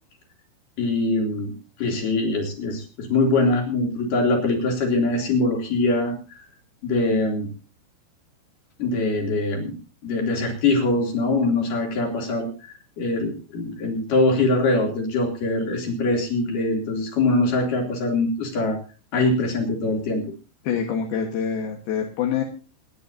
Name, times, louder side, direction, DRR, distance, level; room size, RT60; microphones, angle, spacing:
voice 1, 0.8-1.5 1.8-6.1 6.8-7.5 8.8-9.8 10.0-12.5 13.0-18.8 19.1-20.2, left 2 dB, 45° left, 2 dB, 4.1 m, -23 dB
voice 2, 20.6-22.4, left 7 dB, 65° left, 1 dB, 2.7 m, -25 dB
27.0 x 10.5 x 2.8 m, 0.33 s
omnidirectional pair, 5.8 m